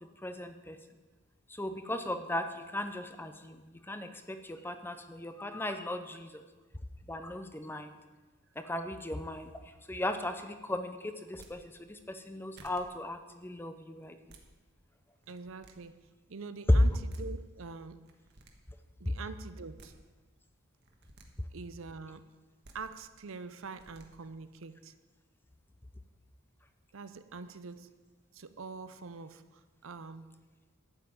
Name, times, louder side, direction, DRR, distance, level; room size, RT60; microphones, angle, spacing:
voice 1, 0.0-0.8 1.6-6.4 7.1-7.9 8.6-9.5 9.9-14.2 16.7-16.8, left 1 dB, 10° left, 8 dB, 0.6 m, -35 dB
sound 1, 11.2-11.5 12.2-12.3 12.6-12.8 14.0-14.4 15.2-15.7 16.8-16.9 17.1-17.2 18.1-18.5 19.5-19.9 20.8-21.3 22.4-22.8 23.6-24.1, right 2 dB, 50° right, 1.4 m, -55 dB
voice 2, 15.3-15.9 16.3-18.0 19.0-19.9 21.5-22.2 22.7-24.9 26.9-27.9 28.3-30.3, right 4 dB, 70° right, 12 dB, 0.6 m, -45 dB
11.5 x 5.7 x 8.6 m, 1.3 s
head